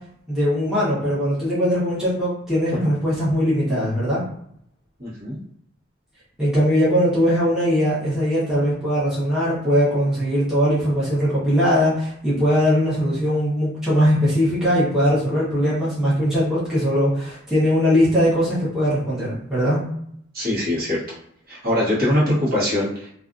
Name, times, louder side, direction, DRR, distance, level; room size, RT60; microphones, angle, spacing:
voice 1, 0.3-4.2 6.4-19.8, equal, 5° right, -10 dB, 0.9 m, -20 dB
voice 2, 5.0-5.4 20.3-21.0 21.5-23.1, left 1 dB, 45° right, -7 dB, 1.1 m, -22 dB
2.5 x 2.4 x 2.4 m, 0.68 s
head